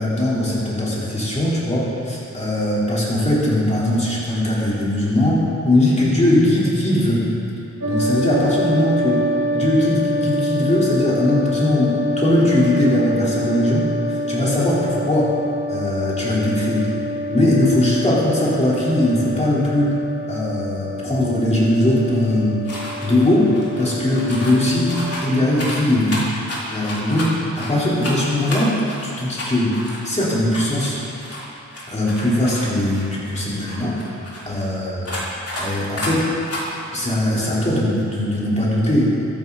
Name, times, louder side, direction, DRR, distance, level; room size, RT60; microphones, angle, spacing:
voice 1, 0.0-7.2 7.8-9.2 9.5-15.3 15.7-16.9 17.3-19.9 20.3-22.6 23.0-23.5 23.8-27.3 27.6-28.8 29.0-29.8 30.0-31.0 31.9-34.0 34.5-35.2 35.6-36.3 36.9-39.2, left 1 dB, 25° left, -7 dB, 4.6 m, -20 dB
sound 1, 7.8-25.1, equal, 70° right, 2.8 m, -26 dB
sound 2, 22.6-23.1 23.4-24.6 24.9-27.7 28.0-31.4 31.7-34.6 35.0-35.6 35.9-36.1 36.4-36.6, left 1 dB, 50° left, 4.1 m, -31 dB
23.5 x 12.5 x 4.4 m, 2.7 s
wide cardioid pair, 130°, 30 cm